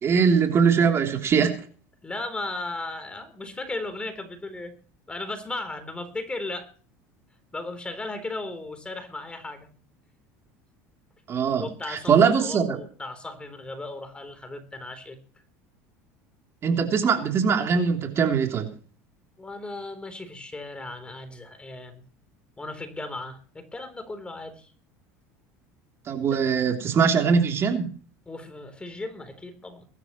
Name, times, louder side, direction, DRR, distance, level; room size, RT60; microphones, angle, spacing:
voice 1, 0.0-1.6 11.3-12.8 16.6-18.7 26.1-27.9, right 6 dB, 35° right, 3 dB, 3.2 m, -22 dB
voice 2, 2.0-4.7 5.1-6.7 7.5-9.7 11.6-15.2 19.4-22.0 22.6-24.7 26.3-26.4 28.3-29.9, left 2 dB, 15° left, 8 dB, 3.6 m, -36 dB
22.5 x 13.0 x 3.1 m, 0.40 s
supercardioid pair, 110°, 7 cm